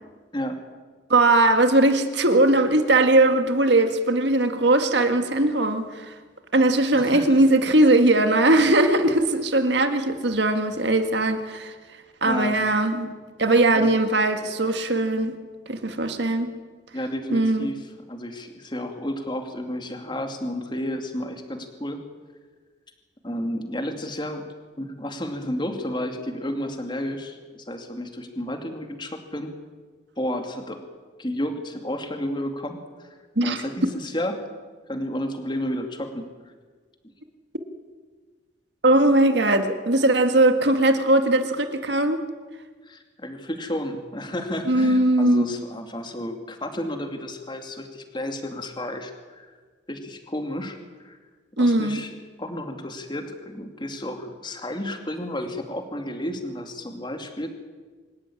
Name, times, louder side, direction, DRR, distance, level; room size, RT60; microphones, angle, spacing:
voice 1, 1.1-6.1 6.5-11.7 12.2-13.1 13.4-15.3 15.7-16.5 17.3-17.7 33.4-33.7 38.8-42.3 44.7-45.5 51.6-52.0, right 2 dB, 65° right, 7 dB, 2.0 m, -20 dB
voice 2, 6.9-7.4 12.2-12.6 13.7-13.9 16.9-22.0 23.2-24.5 24.8-29.5 30.2-30.8 31.2-33.2 33.4-34.5 34.9-36.3 37.0-37.1 42.8-49.5 49.9-50.8 51.0-51.2 51.6-52.1 52.4-57.5, left 1 dB, 25° left, 5 dB, 2.5 m, -32 dB
25.5 x 13.5 x 10.0 m, 1.4 s
head